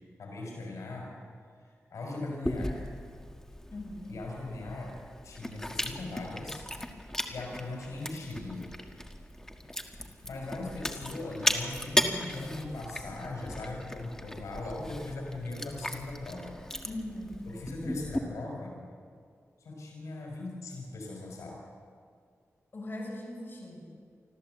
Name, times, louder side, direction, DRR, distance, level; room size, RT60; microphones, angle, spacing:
voice 1, 0.2-1.2 1.6-2.8 4.1-5.0 5.2-6.7 7.3-8.7 10.2-16.6 17.4-18.8 19.6-21.6, left 2 dB, 85° left, -1 dB, 5.4 m, -39 dB
Chewing mastication, 2.4-18.2, left 1 dB, 10° left, 1.6 m, -36 dB
voice 2, 3.7-4.2 16.8-17.7 22.7-23.9, left 1 dB, 45° left, -1 dB, 5.9 m, -40 dB
25.5 x 14.0 x 7.9 m, 2.2 s
wide cardioid pair, 90°, 5 cm